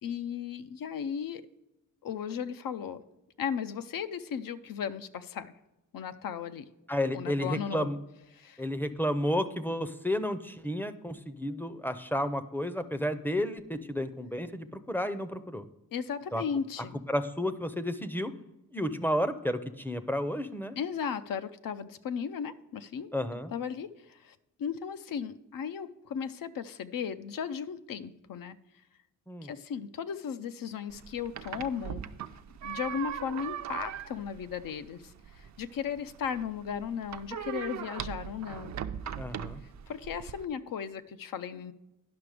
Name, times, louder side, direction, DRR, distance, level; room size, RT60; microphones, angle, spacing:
voice 1, 0.0-1.4 2.0-3.0 3.4-5.5 5.9-6.7 7.1-8.0 8.3-8.7 15.9-17.0 20.8-23.1 23.5-28.5 29.4-32.1 32.6-38.8 39.9-41.7, left 7 dB, 80° left, 11 dB, 0.6 m, -36 dB
voice 2, 6.9-8.0 8.6-15.7 16.3-16.4 17.1-18.3 18.7-20.8 23.1-23.5 29.3-29.5 39.2-39.6, equal, 5° left, 11 dB, 0.5 m, -32 dB
sound 1, 30.9-40.4, right 9 dB, 55° right, 0.5 m, -40 dB
10.5 x 5.9 x 4.9 m, 0.95 s
wide cardioid pair, 105°, 33 cm